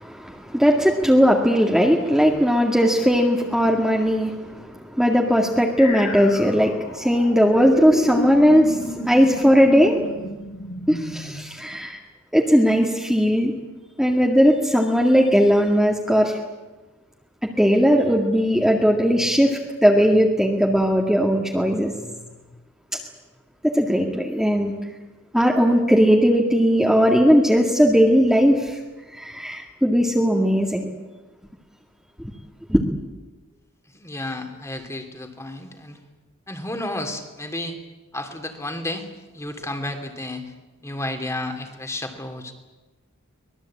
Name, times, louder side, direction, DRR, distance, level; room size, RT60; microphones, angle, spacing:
voice 1, 0.0-4.6 4.9-10.0 10.9-12.0 12.3-13.5 14.0-16.3 17.6-21.9 22.9-23.0 23.6-24.7 25.3-28.8 29.1-30.9 32.7-32.8, equal, ahead, -1 dB, 2.0 m, -18 dB
sound 1, 5.8-11.5, left 1 dB, 70° left, 5.7 m, -32 dB
voice 2, 33.9-36.0 36.5-37.8 38.1-39.1 39.3-40.5 40.8-42.5, left 1 dB, 15° left, 5 dB, 2.7 m, -32 dB
24.5 x 20.0 x 8.7 m, 1.1 s
head